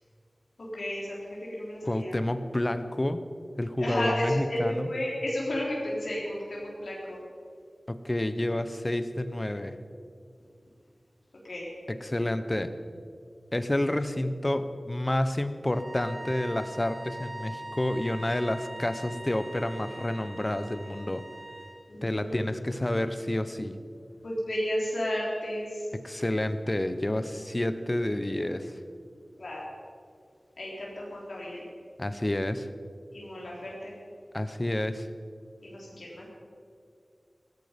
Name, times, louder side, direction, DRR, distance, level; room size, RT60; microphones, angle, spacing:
voice 1, 0.6-2.2 3.8-7.2 11.4-11.7 21.9-22.7 24.2-25.9 29.4-29.6 30.6-31.6 33.1-33.9 35.6-36.3, left 1 dB, 80° left, -5 dB, 3.9 m, -33 dB
voice 2, 1.8-3.2 3.6-4.9 7.9-9.8 11.9-12.7 13.5-21.3 22.0-23.8 25.9-28.8 32.0-32.7 34.3-35.1, left 1 dB, 25° left, 11 dB, 1.0 m, -29 dB
sound 1, 15.7-21.8, right 2 dB, 55° right, 3.0 m, -42 dB
17.5 x 14.5 x 5.3 m, 2.3 s
wide cardioid pair, 70°, 0 cm